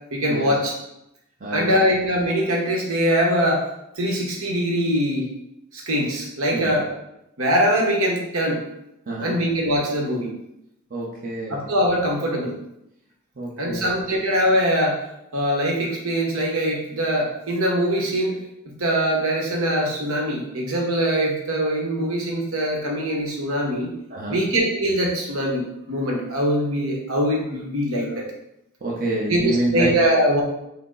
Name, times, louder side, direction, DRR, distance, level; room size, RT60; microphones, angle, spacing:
voice 1, 0.1-0.7 1.5-3.6 4.0-5.2 5.7-6.9 7.4-8.6 9.2-10.3 11.5-12.5 13.6-15.0 15.3-18.4 18.6-23.9 24.3-25.6 25.9-28.2 29.3-30.4, equal, 70° right, -1 dB, 1.1 m, -22 dB
voice 2, 1.4-1.9 6.5-6.7 9.1-9.4 10.9-11.7 13.4-14.2 24.1-24.5 28.8-30.0, right 2 dB, 40° right, -5 dB, 0.7 m, -28 dB
6.0 x 2.0 x 3.8 m, 0.83 s
head